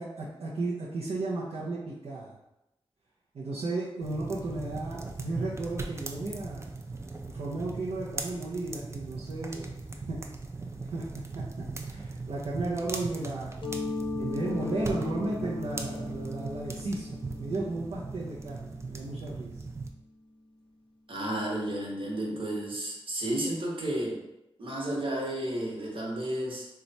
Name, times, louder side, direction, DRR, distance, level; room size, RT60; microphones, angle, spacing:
voice 1, 0.0-2.4 3.3-6.7 7.3-10.2 10.8-11.0 11.3-11.4 11.8-13.6 14.2-19.5, right 2 dB, 80° right, -7 dB, 0.6 m, -34 dB
sound 1, 4.0-19.9, right 3 dB, 30° right, 0.4 m, -39 dB
Mallet percussion, 13.6-19.2, left 2 dB, 50° left, 0.5 m, -37 dB
voice 2, 21.1-24.2 24.6-26.7, right 1 dB, 60° right, -3 dB, 1.1 m, -32 dB
3.1 x 2.3 x 4.0 m, 0.89 s
cardioid pair, 70°, 10 cm